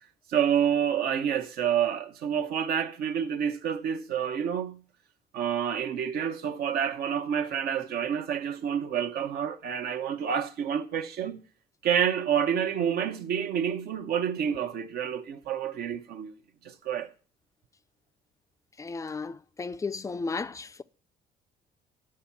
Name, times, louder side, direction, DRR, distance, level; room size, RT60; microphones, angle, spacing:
voice 1, 0.3-4.8 5.3-11.4 11.8-16.3 16.6-17.1, right 8 dB, 65° right, 0.9 m, -28 dB
voice 2, 18.8-20.8, left 4 dB, 20° left, 0.4 m, -34 dB
9.9 x 4.5 x 7.2 m
cardioid pair, 110°, 17 cm